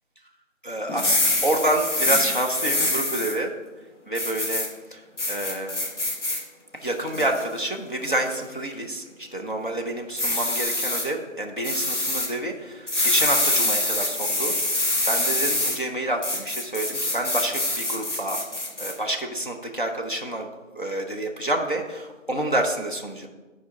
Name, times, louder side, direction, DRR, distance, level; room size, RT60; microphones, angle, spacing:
voice 1, 0.6-3.5 4.1-5.9 6.8-14.7 15.1-18.4 18.8-20.5 20.7-23.3, right 1 dB, 40° left, 1 dB, 0.8 m, -28 dB
sound 1, 0.9-3.3 4.1-4.7 5.2-6.4 6.9-7.4 8.0-8.3 10.2-11.0 11.6-12.3 12.9-15.8 16.2-18.9, left 2 dB, 60° left, 2.4 m, -25 dB
10.5 x 4.8 x 5.8 m, 1.2 s
figure-of-eight pair, 180°, 40 cm